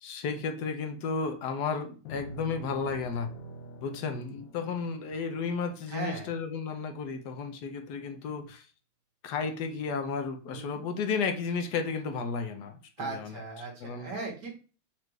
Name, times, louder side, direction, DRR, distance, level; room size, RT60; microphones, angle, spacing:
voice 1, 0.0-3.3 3.8-8.6 9.2-13.4 13.8-14.1, left 5 dB, 70° left, 6 dB, 1.0 m, -33 dB
sound 1, 2.0-6.5, right 2 dB, 90° left, 0.7 m, -46 dB
voice 2, 5.9-6.3 10.5-10.8 13.0-14.5, right 3 dB, 60° right, -1 dB, 1.9 m, -38 dB
4.4 x 2.5 x 4.6 m, 0.37 s
omnidirectional pair, 2.2 m